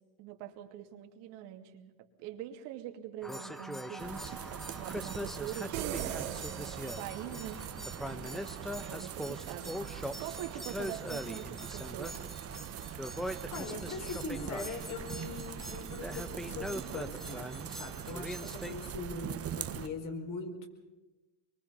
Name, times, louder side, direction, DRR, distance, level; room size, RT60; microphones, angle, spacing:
voice 1, 0.2-1.9 2.2-7.6 8.3-9.8 10.2-12.2, right 11 dB, 65° right, 5 dB, 2.6 m, -44 dB
sound 1, 3.2-18.9, equal, ahead, 0.9 m, -42 dB
sound 2, 4.0-19.9, right 9 dB, 30° right, 1.2 m, -42 dB
sound 3, 5.7-7.5, right 12 dB, 85° right, 3.3 m, -39 dB
voice 2, 12.8-20.7, left 4 dB, 45° left, 4 dB, 4.7 m, -42 dB
24.5 x 23.5 x 5.6 m, 1.1 s
supercardioid pair, 120°, 44 cm